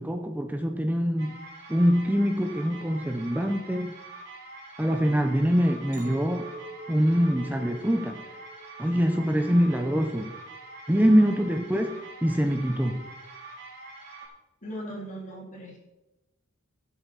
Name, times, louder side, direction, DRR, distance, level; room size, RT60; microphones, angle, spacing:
voice 1, 0.0-1.4 1.7-3.9 4.8-6.5 6.9-8.2 8.8-10.3 10.9-13.0, equal, 10° right, 5 dB, 0.6 m, -24 dB
sound 1, 1.2-14.3, right 3 dB, 60° right, 4.2 m, -45 dB
Chink clink, 5.9-10.3 10.7-11.2, right 1 dB, 40° right, 1.7 m, -46 dB
voice 2, 14.6-15.8, equal, 40° left, -1 dB, 2.9 m, -39 dB
16.0 x 7.9 x 4.1 m, 1.0 s
head